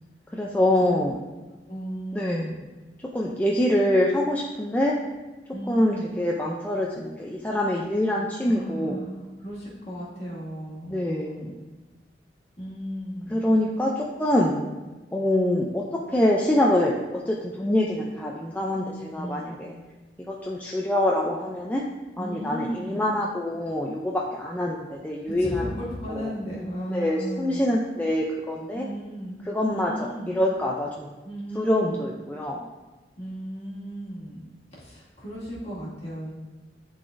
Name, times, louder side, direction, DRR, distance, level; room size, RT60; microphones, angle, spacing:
voice 1, 0.3-1.2 2.1-2.6 3.1-4.9 5.7-9.0 10.9-11.6 13.3-14.6 15.1-17.0 17.3-19.7 20.3-21.8 22.2-25.7 26.1-26.3 26.9-28.9 29.5-29.9 30.3-31.1 31.6-32.7, left 1 dB, 10° left, -3 dB, 0.4 m, -25 dB
voice 2, 1.7-2.6 5.5-6.2 8.4-11.5 12.6-13.5 19.2-19.6 22.2-23.0 25.4-27.7 28.7-29.4 29.7-30.4 31.2-32.1 33.2-34.4 34.7-36.3, equal, 40° left, -7 dB, 2.0 m, -35 dB
10.5 x 4.0 x 2.5 m, 1.2 s
head